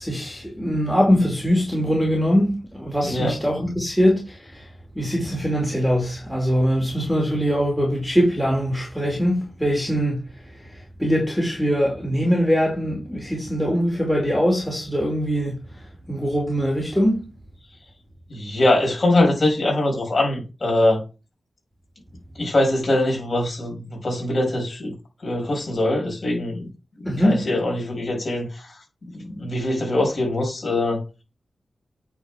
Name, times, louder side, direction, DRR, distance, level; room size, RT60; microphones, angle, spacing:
voice 1, 0.0-4.7 4.9-10.2 10.5-15.6 16.1-17.3 27.0-27.5, equal, 5° left, 2.4 m, -22 dB
voice 2, 3.0-3.3 18.3-21.0 22.4-24.9 25.2-26.6 27.2-28.7 29.1-31.0, left 1 dB, 45° left, 5.2 m, -22 dB
9.0 x 4.2 x 5.0 m
wide cardioid pair, 130°, 0 cm